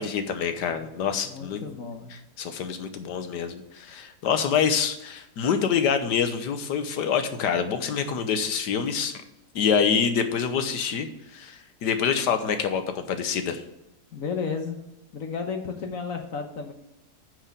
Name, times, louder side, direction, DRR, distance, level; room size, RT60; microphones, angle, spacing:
voice 1, 0.0-1.6 2.1-9.2 9.5-13.6, left 7 dB, 85° left, 8 dB, 1.6 m, -26 dB
voice 2, 1.2-2.1 14.1-14.8 15.1-16.7, left 5 dB, 60° left, 4 dB, 1.3 m, -32 dB
9.1 x 4.9 x 6.8 m, 0.90 s
omnidirectional pair, 1.8 m